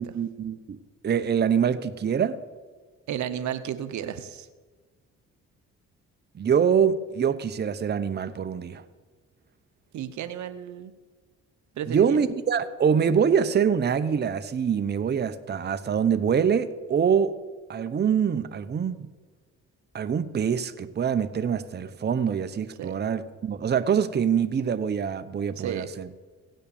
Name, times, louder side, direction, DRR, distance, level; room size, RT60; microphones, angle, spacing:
voice 1, 0.0-2.4 6.3-8.8 11.9-17.3 17.7-19.1 19.9-26.1, right 7 dB, 35° right, 11 dB, 0.8 m, -25 dB
voice 2, 3.1-4.5 9.9-10.9 11.8-12.2 22.8-22.9 25.6-25.9, right 9 dB, 70° right, 12 dB, 0.9 m, -33 dB
16.5 x 7.6 x 7.0 m, 1.4 s
cardioid pair, 90°, 30 cm